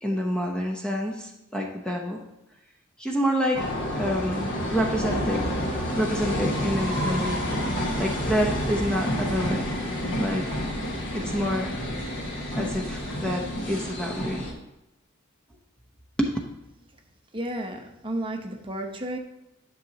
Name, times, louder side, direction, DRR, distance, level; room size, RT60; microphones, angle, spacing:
voice 1, 0.0-2.2 3.0-3.7 4.0-5.4 6.0-7.6 8.0-9.7 10.2-10.5 11.1-11.8 12.6-14.5 16.2-16.3, equal, 5° left, 0 dB, 0.8 m, -28 dB
sound 1, 3.5-14.5, equal, 60° left, 1.6 m, -29 dB
voice 2, 17.3-19.2, right 1 dB, 25° right, 3 dB, 0.9 m, -32 dB
11.0 x 6.4 x 2.9 m, 0.90 s
head